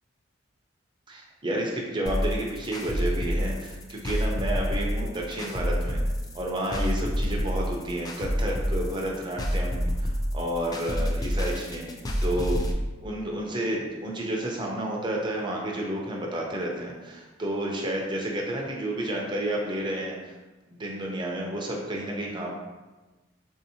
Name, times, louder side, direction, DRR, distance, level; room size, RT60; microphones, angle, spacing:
voice 1, 1.1-6.0 6.3-11.9 12.2-12.6 13.0-20.3 20.7-22.5, right 1 dB, 25° right, -1 dB, 0.6 m, -31 dB
sound 1, 2.1-12.7, equal, 20° left, 0.3 m, -28 dB
3.9 x 2.7 x 2.8 m, 1.2 s
head